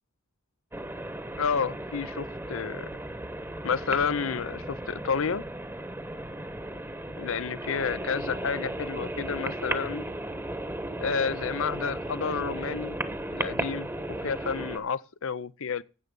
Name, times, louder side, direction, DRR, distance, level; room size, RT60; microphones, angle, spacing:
sound 1, 0.7-14.8, right 1 dB, 10° right, 1.1 m, -35 dB
voice 1, 1.4-2.9 3.6-5.4 7.2-10.1 11.0-13.0 13.3-15.8, left 6 dB, 70° left, 0.7 m, -30 dB
12.5 x 8.2 x 5.3 m
head